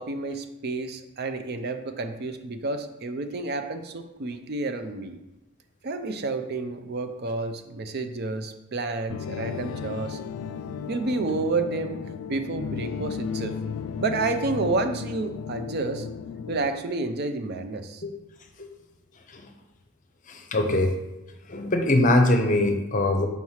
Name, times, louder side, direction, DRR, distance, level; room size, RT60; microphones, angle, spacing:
voice 1, 0.0-5.2 5.8-10.2 10.9-12.0 12.3-13.6 14.0-16.1 16.5-18.0, right 3 dB, 50° right, 8 dB, 0.5 m, -30 dB
sound 1, 9.1-16.7, left 6 dB, 75° left, 0.3 m, -34 dB
voice 2, 20.3-21.0 21.5-23.3, left 1 dB, 40° left, 5 dB, 0.7 m, -22 dB
5.6 x 3.1 x 5.6 m, 0.96 s
head